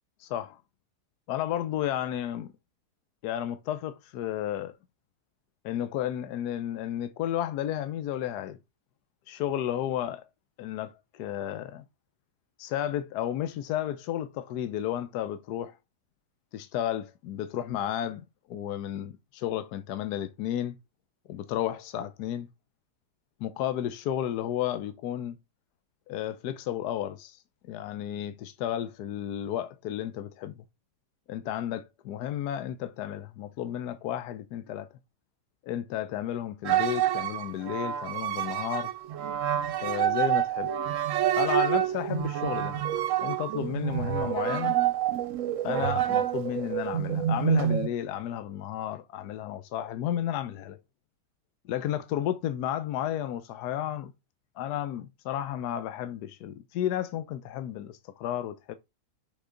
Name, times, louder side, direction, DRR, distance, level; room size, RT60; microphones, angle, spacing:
voice 1, 0.2-0.6 1.3-2.5 3.2-4.7 5.6-8.6 9.3-10.2 10.6-11.8 12.6-15.8 16.5-18.2 18.5-20.8 21.3-22.5 23.4-25.4 26.1-27.4 27.7-30.6 31.3-34.9 35.6-38.9 39.8-40.7 41.4-42.8 43.2-44.8 45.6-50.8 51.7-54.1 54.6-58.7, left 11 dB, 80° left, 1.2 m, -32 dB
sound 1, 36.7-47.9, right 10 dB, 65° right, 0.9 m, -28 dB
6.2 x 5.0 x 3.8 m
omnidirectional pair, 1.7 m